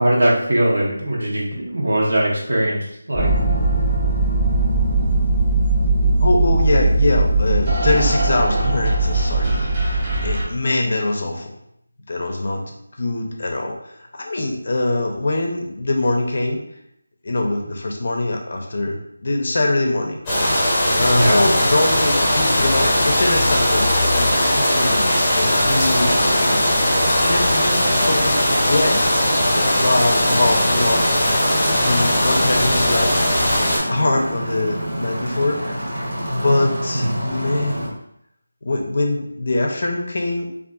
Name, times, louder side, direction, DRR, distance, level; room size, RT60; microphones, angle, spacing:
voice 1, 0.0-3.3 5.9-6.2 21.2-21.4 36.9-37.1, right 1 dB, 75° right, -4 dB, 0.9 m, -20 dB
sound 1, 3.1-10.5, right 2 dB, 25° right, 0.6 m, -19 dB
voice 2, 6.2-11.5 12.1-12.6 13.0-13.8 14.1-16.6 17.2-20.2 20.9-26.7 27.3-31.0 31.7-33.1 33.9-35.6 36.3-37.9 38.6-40.5, left 2 dB, 50° left, 2 dB, 0.5 m, -23 dB
sound 2, 20.3-33.8, left 1 dB, 10° left, 0.8 m, -19 dB
sound 3, 25.9-37.9, equal, 50° right, 1.0 m, -28 dB
2.6 x 2.4 x 2.3 m, 0.75 s
figure-of-eight pair, 170°, 0 cm